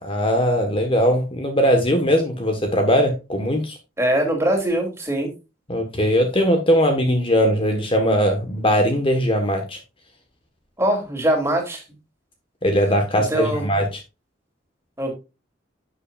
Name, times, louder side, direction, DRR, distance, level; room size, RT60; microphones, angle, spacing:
voice 1, 0.0-3.8 5.7-9.8 12.6-14.0, equal, 30° left, 4 dB, 1.4 m, -20 dB
voice 2, 4.0-5.3 10.8-11.8 13.3-13.6 15.0-15.1, right 1 dB, 15° right, 2 dB, 2.8 m, -22 dB
11.0 x 7.2 x 2.4 m, 0.26 s
head